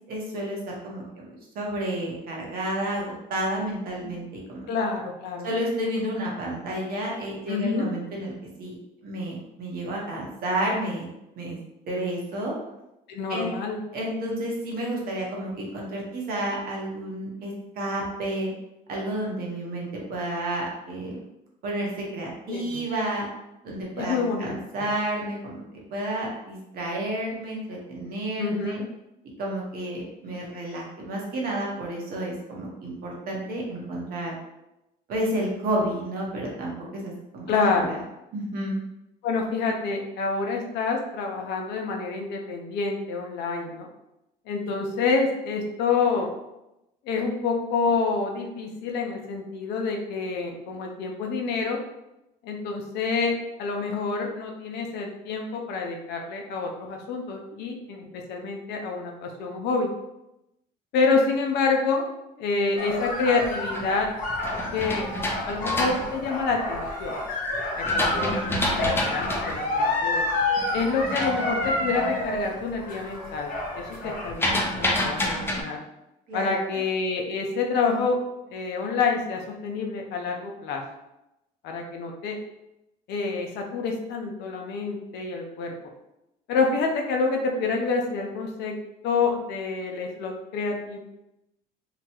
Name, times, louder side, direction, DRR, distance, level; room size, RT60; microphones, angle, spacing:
voice 1, 0.1-0.6 0.8-1.3 1.5-4.7 5.4-8.3 8.6-8.8 9.0-11.1 11.4-11.6 11.9-12.5 13.3-13.5 13.9-18.5 18.9-21.2 21.6-23.3 23.6-28.8 29.4-34.4 35.1-37.9 38.3-38.8 76.3-76.8, right 1 dB, 65° right, -2 dB, 1.0 m, -31 dB
voice 2, 4.7-5.5 7.5-7.9 13.1-13.8 22.5-22.8 23.9-24.9 28.4-28.8 37.5-38.0 39.2-43.9 44.5-46.3 47.0-51.8 52.4-59.9 60.9-62.0 62.4-64.1 64.7-65.1 65.5-67.1 67.7-70.2 70.7-75.8 76.3-78.2 78.5-80.8 81.6-82.4 83.1-85.7 86.5-88.8 89.0-91.0, left 4 dB, 80° left, 2 dB, 0.6 m, -27 dB
sound 1, 62.8-74.4, left 2 dB, 55° left, 0.9 m, -29 dB
sound 2, 63.2-67.0 67.5-72.4 72.7-73.1 73.4-75.6, left 1 dB, 15° left, 0.5 m, -29 dB
2.9 x 2.2 x 2.9 m, 0.91 s
cardioid pair, 110°, 17 cm